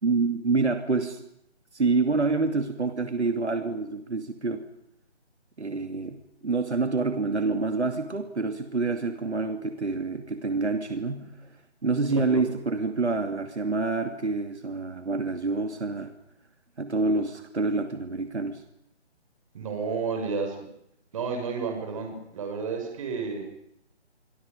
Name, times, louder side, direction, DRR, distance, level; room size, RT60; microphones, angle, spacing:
voice 1, 0.0-1.2 1.7-4.6 5.6-11.3 11.8-16.1 16.8-18.6, right 3 dB, 75° right, 7 dB, 2.5 m, -27 dB
voice 2, 19.5-20.6 21.1-23.5, right 5 dB, 30° right, 4 dB, 5.8 m, -31 dB
27.5 x 25.0 x 5.1 m, 0.76 s
figure-of-eight pair, 160°, 34 cm